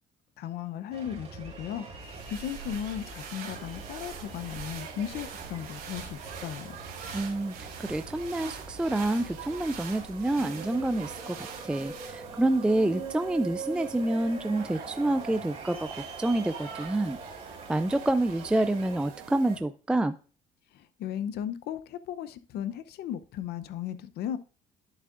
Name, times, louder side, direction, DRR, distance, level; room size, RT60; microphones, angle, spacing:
voice 1, 0.4-6.8 20.7-24.4, left 10 dB, 75° left, 0.7 m, -36 dB
sound 1, 0.9-19.1, right 4 dB, 35° right, 3.1 m, -43 dB
sound 2, 1.8-12.5, right 7 dB, 65° right, 2.7 m, -45 dB
sound 3, 3.4-19.6, right 7 dB, 90° right, 2.6 m, -47 dB
voice 2, 7.1-17.2 17.7-20.1, right 1 dB, 5° right, 0.3 m, -28 dB
11.0 x 7.3 x 2.5 m
cardioid pair, 110°, 17 cm